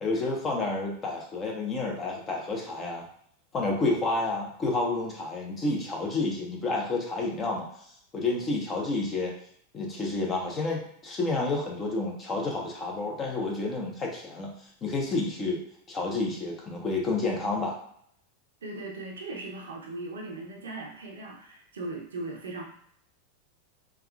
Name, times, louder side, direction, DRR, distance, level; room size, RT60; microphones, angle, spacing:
voice 1, 0.0-3.1 3.5-7.7 8.1-9.3 9.7-14.5 14.8-15.6 15.9-17.8, left 3 dB, 30° left, -1 dB, 0.9 m, -30 dB
voice 2, 18.6-22.6, right 2 dB, 85° right, 0 dB, 0.6 m, -38 dB
3.5 x 2.3 x 2.3 m, 0.67 s
hypercardioid pair, 100°, 0 cm